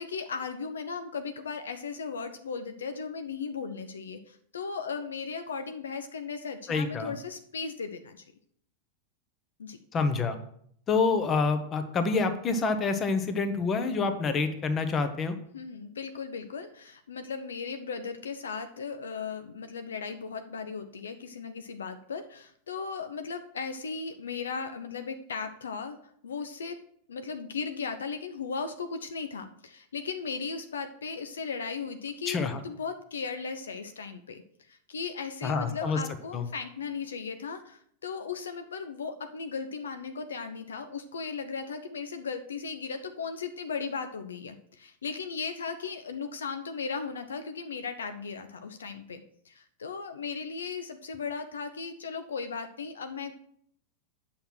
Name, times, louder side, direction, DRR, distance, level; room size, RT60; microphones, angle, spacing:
voice 1, 0.0-8.2 9.6-9.8 15.5-26.0 26.2-26.8 27.1-34.4 34.7-53.4, left 5 dB, 70° left, 8 dB, 0.7 m, -37 dB
voice 2, 6.7-7.1 9.9-10.4 10.9-15.4 32.3-32.6 35.4-36.0 36.3-36.4, left 4 dB, 25° left, 9 dB, 1.1 m, -27 dB
8.5 x 6.0 x 6.2 m, 0.66 s
figure-of-eight pair, 90°, 0 cm